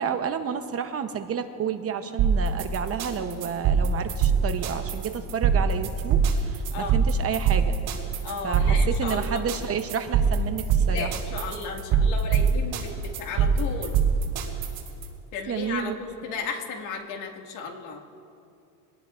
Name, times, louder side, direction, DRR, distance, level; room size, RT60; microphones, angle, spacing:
voice 1, 0.0-7.8 8.4-11.1 15.5-15.9, right 7 dB, 30° right, 7 dB, 0.9 m, -30 dB
sound 1, 2.2-15.0, right 6 dB, 55° right, 4.6 m, -23 dB
voice 2, 8.2-9.4 10.9-14.0 15.3-18.0, left 5 dB, 85° left, 1 dB, 2.2 m, -34 dB
25.5 x 18.0 x 2.5 m, 2.6 s
cardioid pair, 140°, 45 cm